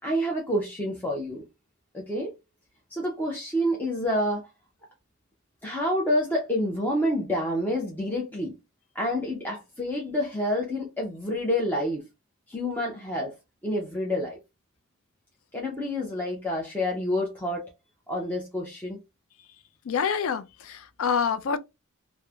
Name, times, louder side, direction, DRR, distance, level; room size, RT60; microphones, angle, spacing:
voice 1, 0.0-1.4 1.9-2.3 2.9-4.4 5.6-8.5 8.9-12.0 12.5-13.4 13.6-14.4 15.5-17.7 18.1-19.0, left 1 dB, 10° left, 0.5 m, -28 dB
voice 2, 19.8-21.6, left 6 dB, 65° left, 0.4 m, -27 dB
3.0 x 2.0 x 2.3 m
head